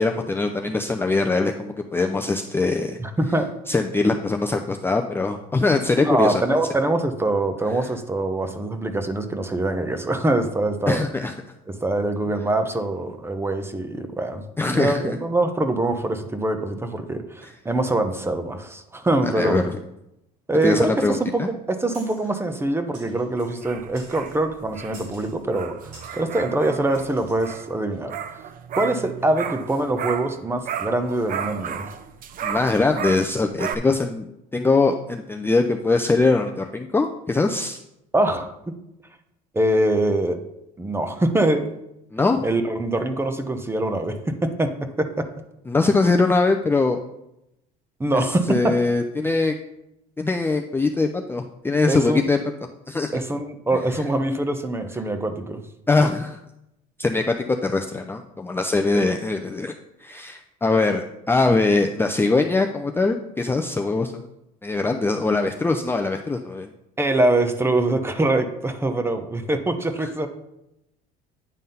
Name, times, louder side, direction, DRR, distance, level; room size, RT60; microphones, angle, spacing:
voice 1, 0.0-3.0 3.7-6.6 10.9-11.3 14.6-15.2 17.4-17.5 19.2-19.6 20.6-21.5 32.4-34.3 34.5-37.8 42.1-42.4 45.7-47.0 48.1-49.5 50.2-52.4 52.9-53.2 55.9-56.4 57.0-59.7 60.0-64.3 64.6-66.7 70.0-70.1, left 3 dB, 10° left, 4 dB, 0.5 m, -22 dB
voice 2, 3.0-3.5 6.0-11.0 11.8-19.7 20.5-28.1 28.7-31.9 38.1-38.5 39.5-40.4 40.8-41.8 42.4-44.2 44.4-44.7 45.0-45.3 48.0-48.7 51.9-52.2 53.1-55.6 58.9-59.0 67.0-70.3, right 2 dB, 10° right, 8 dB, 0.9 m, -24 dB
sound 1, 21.9-22.3 22.9-23.6 23.9-24.4 24.9-25.4 25.9-26.2 26.9-27.5, right 2 dB, 85° right, 3.2 m, -48 dB
sound 2, 23.4-30.4 30.6-33.8, right 8 dB, 45° right, 0.6 m, -33 dB
9.3 x 3.6 x 5.6 m, 0.85 s
supercardioid pair, 100°, 19 cm